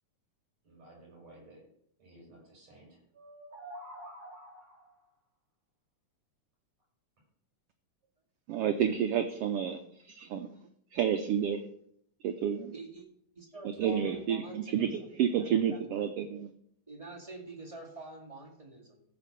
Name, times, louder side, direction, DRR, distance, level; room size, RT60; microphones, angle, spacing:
voice 1, 0.6-1.6 2.0-3.0 13.8-14.2, right 1 dB, 60° right, -3 dB, 6.8 m, -53 dB
sound 1, 3.1-5.0, right 1 dB, 30° right, 3.8 m, -47 dB
voice 2, 8.5-10.5 10.9-11.6 12.2-12.7 13.8-16.5, right 8 dB, 80° right, 8 dB, 1.3 m, -30 dB
voice 3, 12.7-13.0 13.3-15.1 15.4-16.0 16.9-19.0, right 2 dB, 15° right, -2 dB, 1.6 m, -46 dB
14.5 x 5.1 x 6.7 m, 0.71 s
omnidirectional pair, 3.4 m